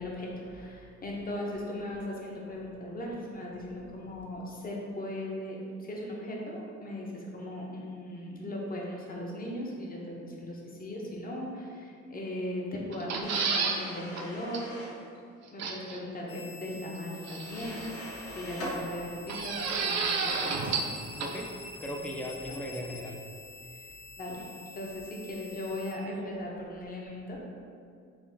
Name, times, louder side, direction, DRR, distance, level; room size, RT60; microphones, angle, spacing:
voice 1, 0.0-14.7 15.5-17.9 18.3-21.2 22.5-22.6 23.7-23.8 24.2-24.5 24.7-27.4, left 1 dB, 30° left, -2 dB, 0.8 m, -38 dB
sound 1, 12.9-13.8 14.2-14.3 14.5-14.6 15.6-16.0 17.3-17.9 19.3-20.9 21.2-21.3, right 5 dB, 60° right, 0.5 m, -30 dB
sound 2, 13.2-15.0 17.4-18.8, equal, 60° left, 1.3 m, -41 dB
sound 3, 16.3-25.9, left 2 dB, 75° left, 0.9 m, -47 dB
voice 2, 21.1-21.5 21.8-23.2, equal, 5° left, 1 dB, 0.3 m, -37 dB
3.9 x 2.4 x 3.3 m, 2.3 s
cardioid pair, 90°, 30 cm